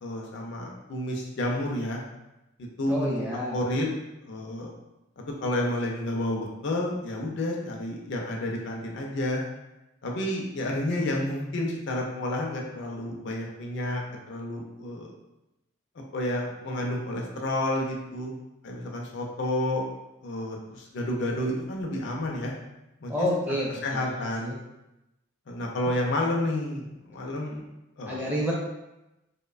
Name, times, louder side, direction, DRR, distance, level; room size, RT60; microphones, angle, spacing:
voice 1, 0.0-2.0 2.6-3.2 3.5-3.9 4.2-4.7 5.2-9.4 10.0-14.0 14.3-15.1 16.0-18.4 18.6-19.8 20.2-22.5 23.0-23.3 23.8-24.6 25.5-27.6 28.0-28.5, left 1 dB, 55° left, -1 dB, 0.4 m, -30 dB
voice 2, 2.9-3.6 23.1-24.1 24.4-24.5 28.1-28.5, equal, 10° right, -5 dB, 0.5 m, -29 dB
2.6 x 2.1 x 2.3 m, 0.94 s
head